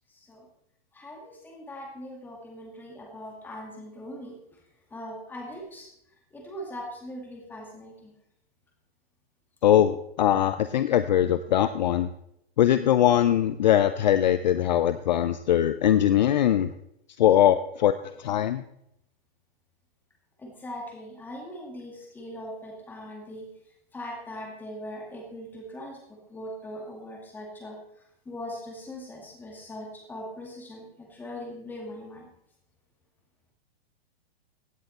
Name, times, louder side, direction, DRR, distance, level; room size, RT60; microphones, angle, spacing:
voice 1, 0.9-4.4 4.9-5.9 6.3-8.1 20.4-23.5 23.9-27.8 28.3-32.3, equal, 5° left, -1 dB, 2.1 m, -40 dB
voice 2, 9.6-12.1 12.6-16.7 17.2-17.9 18.2-18.6, left 11 dB, 45° left, 12 dB, 0.5 m, -21 dB
16.0 x 8.8 x 4.2 m, 0.79 s
hypercardioid pair, 170°, 32 cm